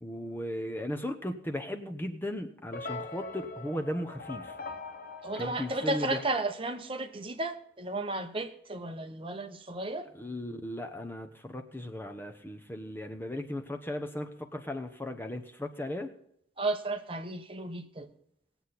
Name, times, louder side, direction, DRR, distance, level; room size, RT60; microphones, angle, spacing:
voice 1, 0.0-4.6 5.4-6.2 10.1-16.1, left 1 dB, 10° left, 5 dB, 0.8 m, -36 dB
sound 1, 2.7-7.0, left 2 dB, 45° left, 1.2 m, -42 dB
voice 2, 5.2-10.1 16.6-18.1, right 2 dB, 25° right, 7 dB, 0.9 m, -33 dB
19.0 x 8.1 x 4.2 m, 0.74 s
head